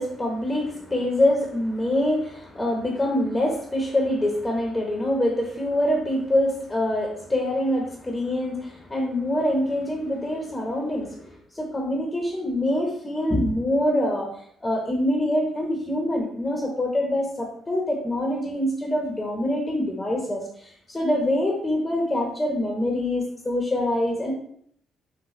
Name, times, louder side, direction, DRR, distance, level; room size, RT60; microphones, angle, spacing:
voice 1, 0.0-11.3 11.5-14.3 14.6-24.3, left 1 dB, 20° left, 0 dB, 1.0 m, -25 dB
6.4 x 2.5 x 3.1 m, 0.63 s
cardioid pair, 90°, 0 cm